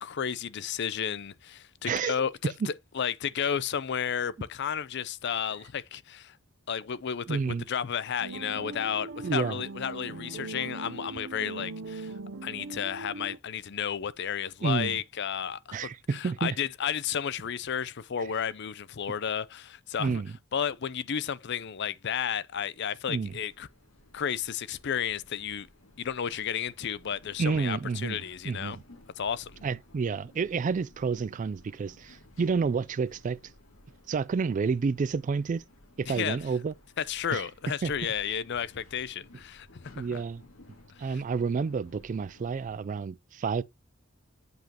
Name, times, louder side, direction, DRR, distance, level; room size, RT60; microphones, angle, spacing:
voice 1, 0.0-6.4 6.7-12.1 12.4-20.2 20.5-23.7 24.1-25.7 26.0-28.8 29.2-29.5 36.1-36.4 37.0-40.2 41.0-41.2, left 8 dB, 55° left, 0.5 m, -32 dB
voice 2, 7.3-7.6 9.2-9.6 14.6-15.0 15.7-16.6 20.0-20.3 23.1-23.3 27.4-28.2 28.4-28.8 29.6-33.4 34.1-35.6 36.0-36.7 37.3-37.4 37.8-37.9 40.0-40.4 41.0-43.6, right 5 dB, 40° right, 0.3 m, -29 dB
sound 1, 8.2-13.4, right 3 dB, 65° right, 0.7 m, -40 dB
sound 2, 23.2-42.8, left 1 dB, 80° left, 2.2 m, -56 dB
8.0 x 5.2 x 2.9 m
head